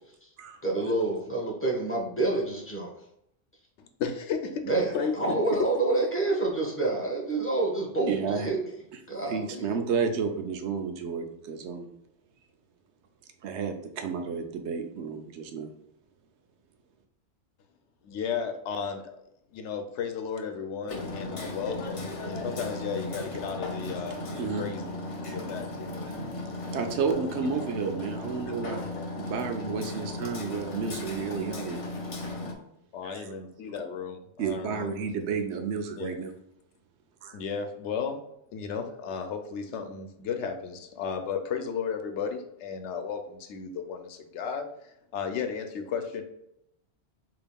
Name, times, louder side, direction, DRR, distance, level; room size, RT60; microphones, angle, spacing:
voice 1, 0.6-2.9 4.7-8.7 9.1-9.7, right 2 dB, 10° left, -2 dB, 0.9 m, -28 dB
voice 2, 4.0-4.6 4.9-5.4 18.0-19.2 19.5-24.2 24.6-26.1 27.1-27.3 28.5-29.1 32.9-34.9 36.0-36.1 37.3-38.2 38.5-44.7 45.1-46.2, left 6 dB, 85° left, 7 dB, 0.9 m, -34 dB
voice 3, 8.0-8.5 9.3-11.9 13.4-15.7 24.4-24.7 26.7-28.9 29.2-31.8 33.0-33.3 34.4-36.3 37.2-37.4, right 5 dB, 80° right, 6 dB, 0.9 m, -31 dB
Hammer, 20.9-32.5, left 2 dB, 40° left, 0.5 m, -36 dB
5.1 x 2.9 x 2.2 m, 0.80 s
omnidirectional pair, 1.2 m